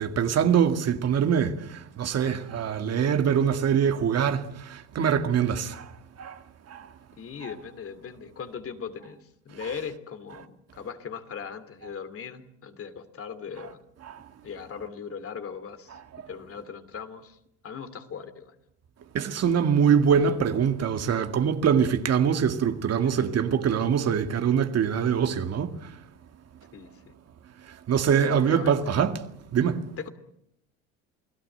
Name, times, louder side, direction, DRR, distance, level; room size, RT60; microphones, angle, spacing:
voice 1, 0.0-5.9 6.2-6.4 6.7-6.9 7.4-7.5 14.0-14.2 19.1-25.9 27.9-29.2 29.5-29.9, right 7 dB, 45° right, 2.1 m, -24 dB
voice 2, 7.2-9.2 9.4-13.8 14.4-16.0 16.3-17.4 17.6-18.5 26.7-27.1 28.3-29.0 30.0-30.1, left 6 dB, 40° left, 2.7 m, -38 dB
29.0 x 18.0 x 8.0 m
supercardioid pair, 90°, 35 cm